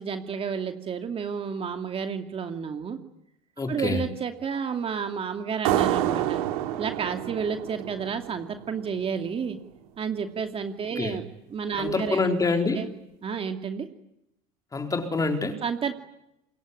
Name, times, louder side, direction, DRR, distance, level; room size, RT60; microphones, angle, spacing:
voice 1, 0.0-3.0 3.7-6.4 6.8-9.6 10.0-11.2 11.5-12.4 12.8-12.9 13.2-13.9 15.6-15.9, right 6 dB, 30° right, 6 dB, 2.5 m, -31 dB
voice 2, 3.6-4.0 11.0-11.2 11.8-12.9 14.7-15.6, left 3 dB, 20° left, 5 dB, 4.5 m, -26 dB
sound 1, 5.6-9.0, right 13 dB, 90° right, 2.8 m, -28 dB
27.0 x 22.0 x 9.8 m, 0.82 s
supercardioid pair, 120°, 18 cm